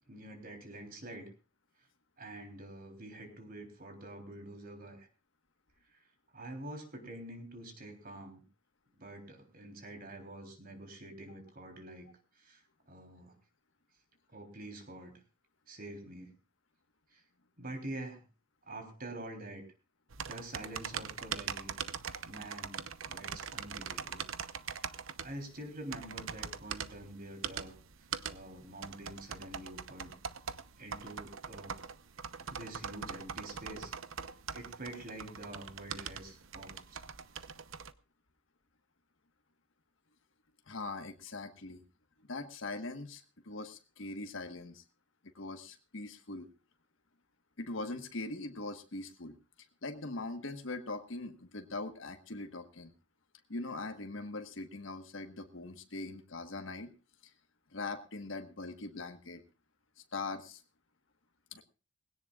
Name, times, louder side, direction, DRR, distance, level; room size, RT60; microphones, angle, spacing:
voice 1, 0.1-1.3 2.2-5.1 5.9-6.0 6.3-8.4 9.0-12.1 12.4-12.6 12.9-13.4 14.3-15.1 15.7-16.3 17.1-17.2 17.6-18.2 18.7-19.6 20.2-21.7 22.2-24.2 25.2-27.7 28.2-30.2 30.8-31.8 32.4-33.9 34.5-37.0, right 1 dB, 45° right, 5 dB, 3.5 m, -46 dB
sound 1, 20.1-37.9, right 7 dB, 80° right, 0.8 m, -42 dB
voice 2, 40.7-41.8 42.3-44.8 45.3-46.5 47.6-49.3 49.8-52.9 53.5-56.9 57.7-59.4 60.1-60.6 61.5-61.6, left 2 dB, 70° left, 6 dB, 1.4 m, -41 dB
20.5 x 17.0 x 2.4 m, 0.33 s
head